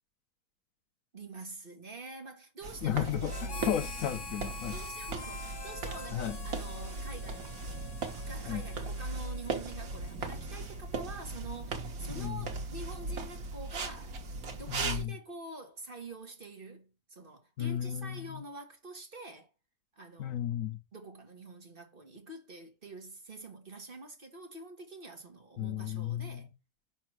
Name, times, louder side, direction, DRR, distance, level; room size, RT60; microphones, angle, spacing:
voice 1, 1.1-3.8 4.7-7.6 8.2-14.2 14.5-19.5 19.9-20.4 20.9-26.5, right 2 dB, 40° right, 1.7 m, -46 dB
sound 1, 2.6-15.1, right 3 dB, 85° right, 1.8 m, -38 dB
voice 2, 2.8-4.8 6.1-6.4 8.4-8.6 12.1-12.5 14.7-15.1 17.6-18.4 20.2-20.8 25.6-26.5, left 10 dB, 70° left, 1.2 m, -34 dB
Harmonica, 3.3-11.0, left 3 dB, 30° left, 0.4 m, -46 dB
5.7 x 4.4 x 6.0 m
omnidirectional pair, 1.5 m